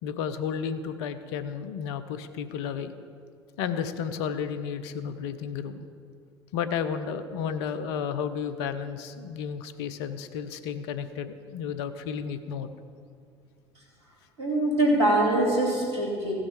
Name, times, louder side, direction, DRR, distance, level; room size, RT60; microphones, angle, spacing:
voice 1, 0.0-2.9 3.6-5.9 6.5-12.7, left 7 dB, 70° left, 10 dB, 0.7 m, -32 dB
voice 2, 14.4-16.3, right 1 dB, 90° right, -2 dB, 2.5 m, -23 dB
16.0 x 6.2 x 4.9 m, 2.3 s
hypercardioid pair, 60°, 14 cm